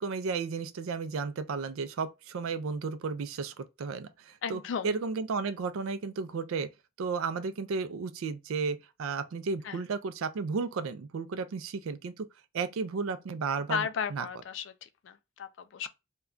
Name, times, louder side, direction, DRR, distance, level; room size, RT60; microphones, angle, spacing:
voice 1, 0.0-6.7 7.0-12.3 12.5-14.3, right 4 dB, 85° right, 0.4 m, -33 dB
voice 2, 4.4-5.0 9.6-9.8 13.7-15.9, left 7 dB, 60° left, 0.3 m, -35 dB
2.2 x 2.2 x 3.6 m
head